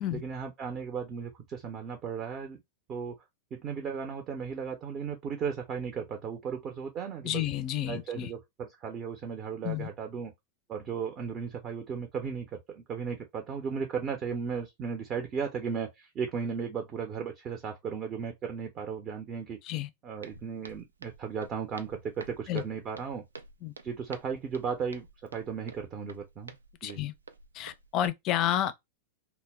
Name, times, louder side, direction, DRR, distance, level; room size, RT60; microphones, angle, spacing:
voice 1, 0.1-2.6 2.9-3.2 3.5-7.4 7.9-10.3 10.7-19.6 20.0-23.2 23.8-25.1 25.3-26.5 26.8-27.0, right 6 dB, 35° right, 0.6 m, -35 dB
voice 2, 7.2-8.3 9.6-9.9 19.6-19.9 22.5-22.6 23.6-23.7 26.8-27.1 27.5-28.7, left 12 dB, 40° left, 0.4 m, -30 dB
Walk footsteps, 20.2-28.1, right 4 dB, 85° right, 0.3 m, -50 dB
2.1 x 2.0 x 3.4 m
figure-of-eight pair, 95°, 0 cm